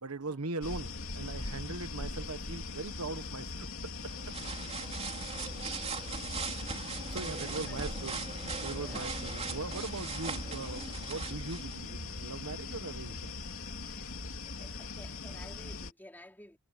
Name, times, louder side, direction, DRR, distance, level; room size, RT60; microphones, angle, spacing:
voice 1, 0.0-4.1 4.7-4.8 7.1-13.4, right 3 dB, 80° right, 1.3 m, -40 dB
sound 1, 0.6-15.9, left 3 dB, 65° left, 2.9 m, -41 dB
sound 2, 4.0-11.8, right 4 dB, 30° right, 3.3 m, -40 dB
voice 2, 7.3-8.0 8.8-9.4 13.8-14.1 14.4-16.6, left 1 dB, 10° left, 3.2 m, -53 dB
sound 3, 8.1-15.0, left 3 dB, 35° left, 3.3 m, -59 dB
head